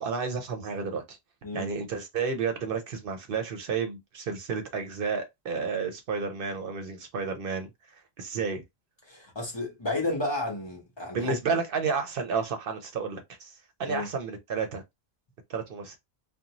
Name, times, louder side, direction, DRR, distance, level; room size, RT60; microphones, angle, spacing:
voice 1, 0.0-1.2 1.5-8.6 11.1-14.8 15.5-16.0, right 5 dB, 65° right, 0.7 m, -31 dB
voice 2, 9.1-11.3 13.9-14.1, left 2 dB, 30° left, 0.8 m, -32 dB
2.5 x 2.1 x 2.8 m
omnidirectional pair, 1.1 m